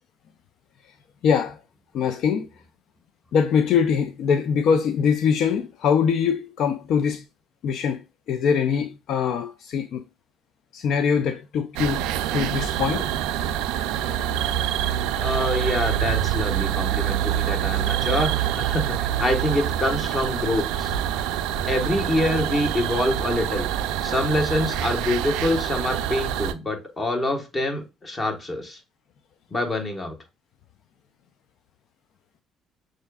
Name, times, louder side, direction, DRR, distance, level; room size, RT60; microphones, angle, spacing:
voice 1, 1.2-1.6 1.9-2.5 3.3-7.2 7.6-10.0 10.7-12.0 12.3-13.1, left 6 dB, 70° left, 0.3 m, -23 dB
sound 1, 11.8-26.5, right 11 dB, 85° right, 0.3 m, -26 dB
voice 2, 15.2-21.0 21.7-28.8 29.5-30.1, left 1 dB, 30° left, 1.3 m, -26 dB
6.3 x 2.5 x 2.3 m
supercardioid pair, 75°, 0 cm